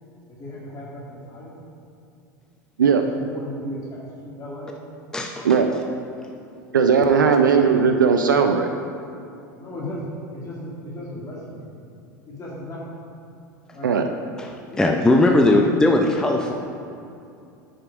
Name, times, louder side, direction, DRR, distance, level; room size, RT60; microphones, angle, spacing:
voice 1, 0.3-1.6 3.0-4.8 9.6-11.6 12.3-13.0 13.7-13.9 14.7-15.8, left 1 dB, 30° left, -5 dB, 2.0 m, -36 dB
voice 2, 5.1-5.6 14.4-14.5 14.8-16.5, left 2 dB, 5° left, 1 dB, 0.6 m, -18 dB
voice 3, 6.7-8.7 13.8-14.1, right 6 dB, 85° right, 6 dB, 0.4 m, -17 dB
8.7 x 5.2 x 4.9 m, 2.6 s
hypercardioid pair, 80°, 10 cm